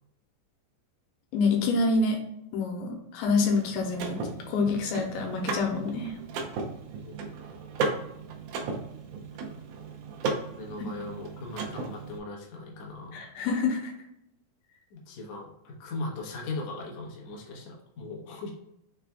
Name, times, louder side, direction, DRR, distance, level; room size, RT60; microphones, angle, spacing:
voice 1, 1.3-2.2 2.5-4.2 4.5-6.1 13.1-13.9, left 3 dB, 90° left, 2 dB, 2.7 m, -27 dB
Car / Mechanisms, 3.2-12.2, right 4 dB, 85° right, 1.7 m, -36 dB
voice 2, 10.6-13.3 14.9-18.5, left 2 dB, 70° left, -2 dB, 1.6 m, -39 dB
6.2 x 3.4 x 2.3 m, 0.83 s
omnidirectional pair, 4.4 m